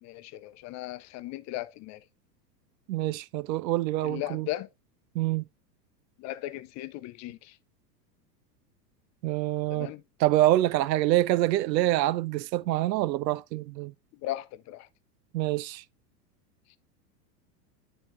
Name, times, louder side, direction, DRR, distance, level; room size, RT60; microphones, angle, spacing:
voice 1, 0.0-2.0 4.0-4.7 6.2-7.6 9.7-10.0 14.2-14.9, left 15 dB, 35° left, 0.6 m, -37 dB
voice 2, 2.9-4.5 5.1-5.4 9.2-9.9 10.2-13.9 15.3-15.8, right 15 dB, 80° right, 0.6 m, -26 dB
9.8 x 3.9 x 3.0 m
hypercardioid pair, 95°, 50 cm